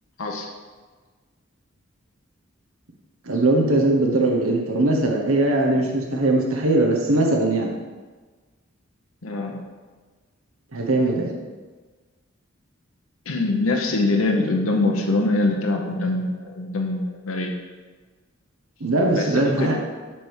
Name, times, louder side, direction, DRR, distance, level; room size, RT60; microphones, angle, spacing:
voice 1, 3.2-7.7 10.7-11.3 18.8-19.8, right 2 dB, 85° right, 0 dB, 1.1 m, -20 dB
voice 2, 9.2-9.6 13.3-17.5 19.1-19.8, left 2 dB, 85° left, 1 dB, 1.0 m, -23 dB
7.4 x 3.5 x 6.4 m, 1.4 s
head